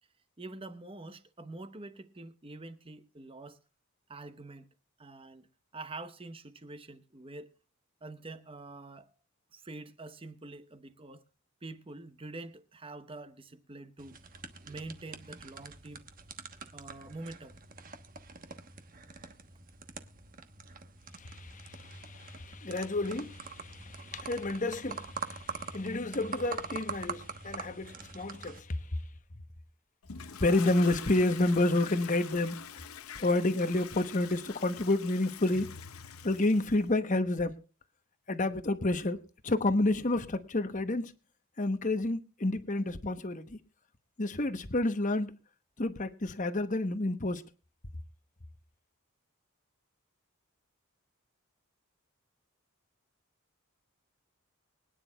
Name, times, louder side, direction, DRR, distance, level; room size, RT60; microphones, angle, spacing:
voice 1, 0.4-3.6 4.1-4.7 5.0-5.5 5.7-7.5 8.0-9.1 9.5-11.3 11.6-14.2 14.7-16.0 16.7-17.6, right 2 dB, 25° right, 0.9 m, -46 dB
sound 1, 14.0-28.6, right 5 dB, 40° right, 1.1 m, -44 dB
voice 2, 21.2-29.0 30.4-32.6 33.1-35.7 36.2-37.5 38.3-39.2 39.4-41.1 41.6-43.6 44.2-45.3 45.8-47.4, left 2 dB, 35° left, 1.0 m, -30 dB
Toilet flush, 30.0-36.9, left 8 dB, 80° left, 0.8 m, -46 dB
24.0 x 9.8 x 2.3 m
head